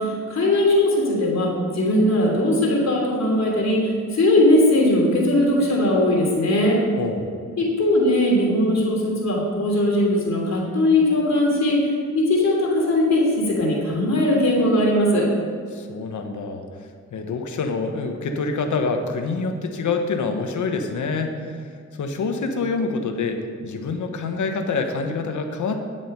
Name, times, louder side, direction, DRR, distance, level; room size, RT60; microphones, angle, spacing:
voice 1, 0.0-6.8 7.6-15.3, left 1 dB, 65° left, -2 dB, 3.0 m, -19 dB
voice 2, 7.0-7.3 15.7-16.6 17.1-21.6 22.0-25.8, left 4 dB, 80° left, 5 dB, 1.1 m, -26 dB
10.0 x 7.5 x 5.5 m, 2.2 s
wide cardioid pair, 105°, 30 cm